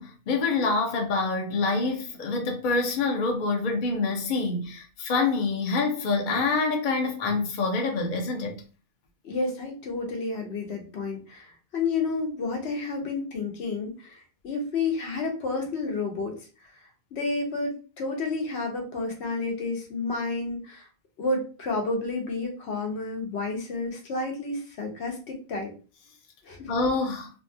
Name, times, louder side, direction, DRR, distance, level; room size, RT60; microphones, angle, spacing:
voice 1, 0.0-8.6 26.7-27.3, left 3 dB, 55° left, 0.7 m, -26 dB
voice 2, 9.2-16.3 16.6-16.7 17.1-20.9 21.2-25.7 26.4-26.7, left 3 dB, 85° left, 1.1 m, -30 dB
2.7 x 2.3 x 2.6 m
omnidirectional pair, 1.1 m